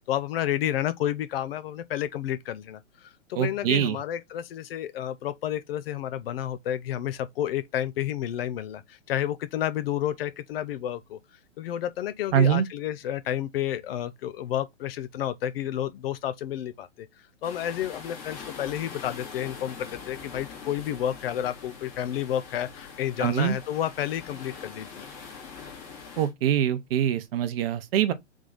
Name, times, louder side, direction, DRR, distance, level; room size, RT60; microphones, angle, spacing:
voice 1, 0.1-2.8 3.3-11.2 11.6-17.1 17.4-25.0, left 11 dB, 55° left, 0.6 m, -30 dB
voice 2, 3.3-4.0 12.3-12.7 23.2-23.6 26.2-28.1, right 10 dB, 50° right, 0.9 m, -24 dB
sound 1, 17.4-26.3, left 5 dB, 35° left, 1.7 m, -43 dB
3.7 x 3.1 x 3.8 m
hypercardioid pair, 130°, 37 cm